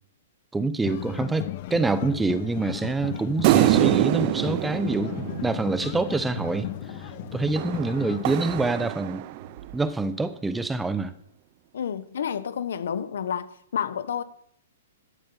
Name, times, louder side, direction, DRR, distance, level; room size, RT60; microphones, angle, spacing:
voice 1, 0.5-9.2 9.7-11.1, right 3 dB, 10° right, 0.8 m, -26 dB
sound 1, 0.8-8.7, left 14 dB, 50° left, 0.8 m, -35 dB
sound 2, 2.7-7.9 8.2-9.8, right 7 dB, 60° right, 1.5 m, -46 dB
sound 3, 3.4-6.1 7.6-9.6, right 15 dB, 45° right, 0.6 m, -25 dB
voice 2, 11.7-14.2, left 8 dB, 75° left, 1.1 m, -30 dB
12.0 x 7.7 x 7.2 m
hypercardioid pair, 135°, 0 cm